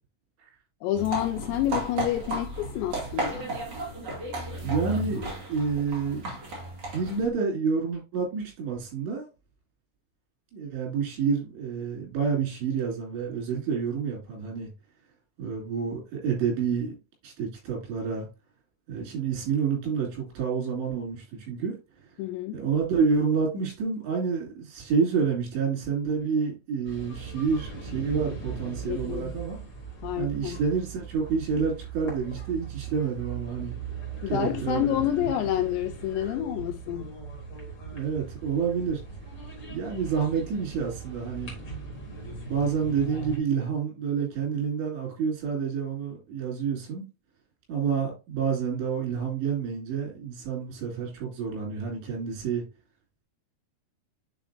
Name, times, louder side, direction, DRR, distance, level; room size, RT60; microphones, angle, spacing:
voice 1, 0.8-3.5 22.2-22.6 28.9-29.3 30.0-30.6 34.2-37.1, left 12 dB, 85° left, 2.8 m, -28 dB
sound 1, 0.9-7.3, right 2 dB, 30° right, 2.2 m, -34 dB
voice 2, 4.6-6.2 6.9-9.3 10.5-14.7 15.4-17.0 17.2-18.3 18.9-21.8 22.5-29.6 30.2-33.8 34.3-34.9 37.9-39.0 39.7-41.6 42.5-47.0 47.7-52.6, right 6 dB, 80° right, 5.2 m, -28 dB
sound 2, 26.8-43.4, right 5 dB, 35° left, 2.1 m, -39 dB
9.0 x 4.7 x 2.6 m
omnidirectional pair, 5.1 m